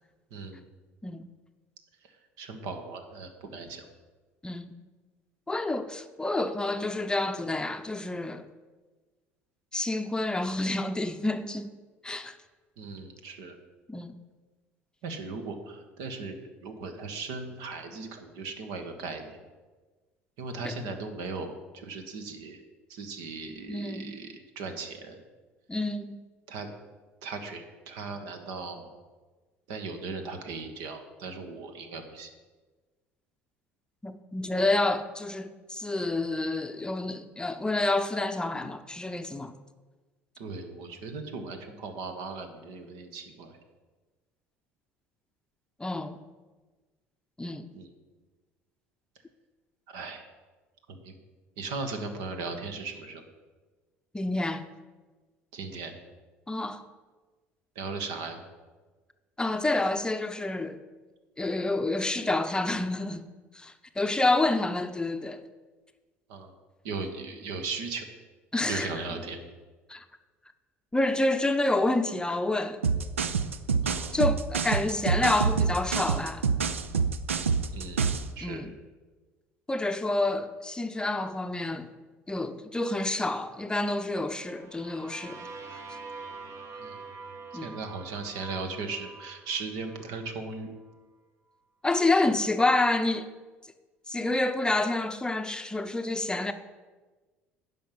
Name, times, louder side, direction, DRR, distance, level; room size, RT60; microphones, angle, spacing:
voice 1, 0.3-0.7 2.4-3.8 12.8-13.6 15.0-19.4 20.4-22.6 22.9-25.2 26.5-26.7 27.2-28.9 29.7-32.3 40.4-43.6 47.7-47.9 49.9-50.3 50.9-51.1 51.6-53.2 55.5-55.9 57.7-58.4 66.3-66.5 66.8-68.1 68.6-69.4 73.8-74.1 77.7-78.6 86.8-87.1 87.5-90.7, right 4 dB, 65° right, 1.4 m, -38 dB
voice 2, 4.4-4.8 5.5-8.5 9.7-11.7 12.0-12.4 13.9-14.2 20.6-20.8 23.7-24.2 25.7-26.2 34.0-39.5 45.8-46.2 47.4-47.7 54.1-54.6 56.5-56.9 59.4-60.8 61.4-63.3 63.5-65.4 68.5-68.9 69.9-70.0 70.9-72.8 74.1-76.4 78.4-78.7 79.7-81.9 82.3-85.4 87.5-87.7 91.8-93.3 94.1-96.5, left 2 dB, 10° left, 0.7 m, -28 dB
sound 1, 72.8-78.3, right 5 dB, 90° right, 0.4 m, -26 dB
sound 2, 84.4-90.3, right 4 dB, 50° right, 1.5 m, -45 dB
10.0 x 5.6 x 7.6 m
hypercardioid pair, 65°, 7 cm